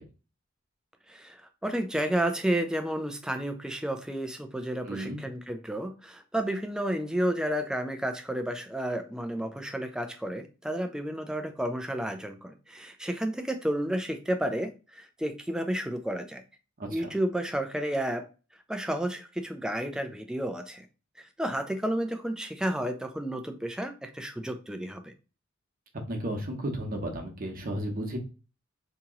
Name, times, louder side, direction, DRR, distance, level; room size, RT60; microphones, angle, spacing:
voice 1, 1.1-16.4 16.9-18.3 18.7-20.9 21.2-25.1, right 1 dB, 5° right, 7 dB, 0.3 m, -31 dB
voice 2, 4.8-5.2 16.8-17.1 26.1-28.2, right 1 dB, 45° right, 2 dB, 0.8 m, -33 dB
2.9 x 2.8 x 3.6 m, 0.33 s
head